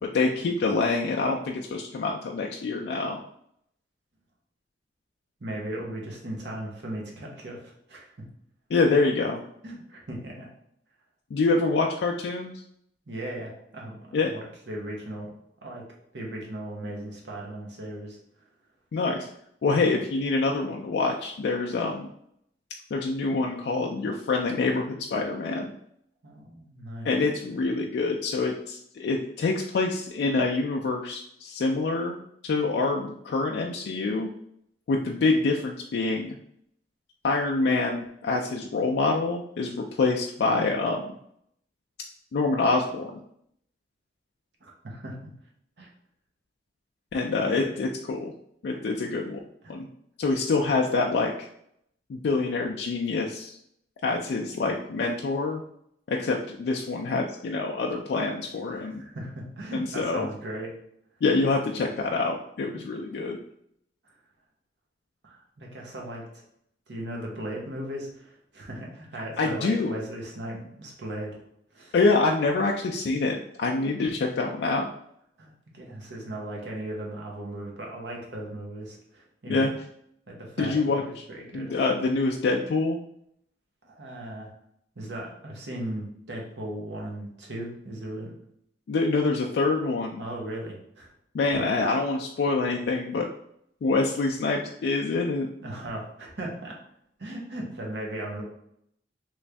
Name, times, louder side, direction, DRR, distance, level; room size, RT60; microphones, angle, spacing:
voice 1, 0.0-3.2 8.7-9.4 11.3-12.5 14.1-14.3 18.9-19.3 19.6-22.1 22.9-25.7 27.0-32.2 32.4-34.3 34.9-36.4 37.2-41.1 42.3-43.2 47.1-48.3 48.6-49.4 49.7-49.9 50.2-51.5 52.1-53.6 54.0-55.6 56.1-59.0 59.7-60.3 61.2-63.4 69.4-69.9 71.9-74.9 79.5-79.7 80.6-81.2 81.5-83.0 88.9-90.2 91.3-93.3 93.8-95.5, left 3 dB, 65° left, 0 dB, 0.3 m, -26 dB
voice 2, 5.4-8.1 9.6-10.5 13.1-15.3 15.6-15.8 16.1-18.2 26.2-27.1 44.6-45.2 45.8-45.9 47.6-47.8 48.7-48.8 49.6-49.8 50.3-50.4 58.7-60.7 63.0-63.3 65.2-66.2 66.9-71.4 71.7-71.9 75.4-79.7 80.3-81.0 81.3-81.7 83.8-84.5 85.0-88.3 90.2-91.1 91.4-91.5 95.6-96.8 97.2-98.4, right 1 dB, 70° right, -1 dB, 0.9 m, -37 dB
3.1 x 2.5 x 3.3 m, 0.72 s
head